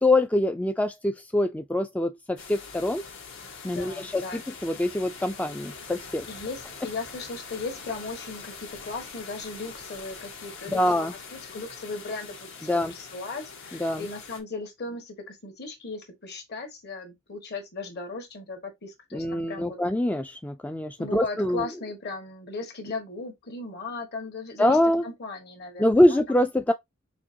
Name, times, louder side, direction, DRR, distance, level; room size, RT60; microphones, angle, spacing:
voice 1, 0.0-3.0 3.6-6.2 10.7-11.1 12.7-12.9 13.8-14.0 19.1-21.6 24.6-25.0 25.8-26.7, left 1 dB, 5° left, 0.3 m, -24 dB
sound 1, 2.4-14.4, left 5 dB, 70° left, 1.6 m, -43 dB
voice 2, 3.7-4.4 6.2-19.8 21.0-26.2, left 3 dB, 55° left, 1.6 m, -37 dB
6.1 x 2.9 x 2.7 m
head